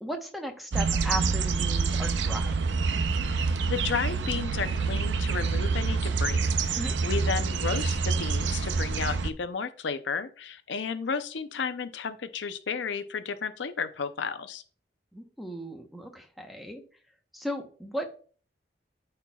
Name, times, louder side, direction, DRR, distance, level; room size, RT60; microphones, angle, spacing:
voice 1, 0.0-2.5 6.8-6.9 15.1-16.8 17.3-18.1, equal, ahead, 3 dB, 0.9 m, -36 dB
sound 1, 0.7-9.3, right 4 dB, 80° right, 0.6 m, -27 dB
voice 2, 3.3-14.6, left 5 dB, 80° left, 10 dB, 0.6 m, -33 dB
13.0 x 4.3 x 2.3 m, 0.41 s
head